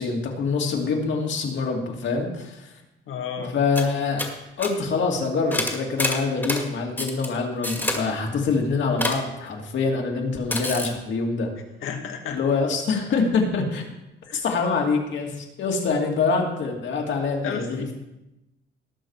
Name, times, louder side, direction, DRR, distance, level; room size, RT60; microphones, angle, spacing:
voice 1, 0.0-2.7 3.5-4.2 4.6-11.5 12.3-13.8 14.3-18.0, left 4 dB, 65° left, 0 dB, 2.5 m, -25 dB
voice 2, 3.1-3.5 11.8-12.4 14.3-14.4 17.4-17.7, left 7 dB, 80° left, 3 dB, 2.0 m, -31 dB
sound 1, 3.4-3.5 3.7-3.9 4.2-4.7 5.5-6.6 7.0-7.3 7.6-8.0 9.0-9.2 10.5-10.9, left 1 dB, 10° left, 2.1 m, -26 dB
18.5 x 6.6 x 4.8 m, 0.94 s
cardioid pair, 130°, 21 cm